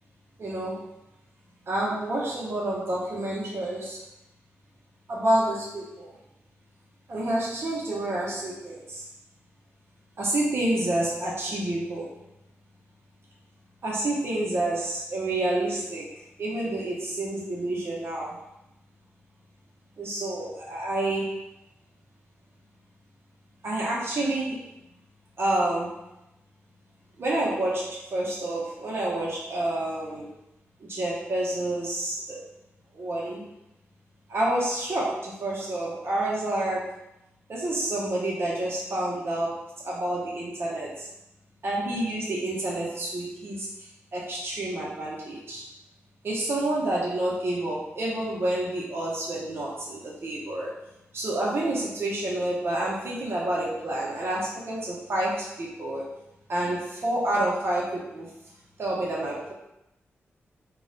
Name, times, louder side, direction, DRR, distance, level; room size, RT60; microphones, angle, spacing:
voice 1, 0.4-0.8 1.7-4.0 5.1-6.1 7.1-9.0 10.2-12.1 13.8-16.1 16.4-18.4 20.0-21.3 23.6-24.6 25.4-26.0 27.2-30.3 30.9-32.4 32.9-33.5 34.3-36.9 37.5-39.6 39.8-41.1 41.6-43.7 44.1-45.6 46.2-50.7 51.1-56.0 56.5-58.3 58.8-59.5, right 1 dB, 60° right, -5 dB, 0.7 m, -28 dB
2.3 x 2.1 x 3.8 m, 0.88 s
cardioid pair, 50°, 5 cm